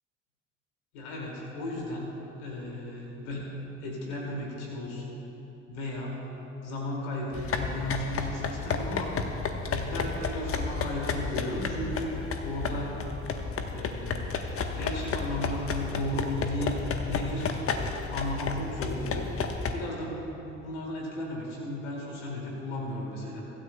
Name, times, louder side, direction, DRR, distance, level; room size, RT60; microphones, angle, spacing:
voice 1, 0.9-2.0 2.4-3.5 3.8-5.2 5.7-6.2 6.6-9.1 9.7-12.9 13.2-14.4 14.7-16.7 17.0-23.4, left 1 dB, 70° left, -2 dB, 2.4 m, -35 dB
sound 1, 7.3-19.7, left 5 dB, 40° left, 1.1 m, -32 dB
24.0 x 12.5 x 2.2 m, 3.0 s
figure-of-eight pair, 55°, 35 cm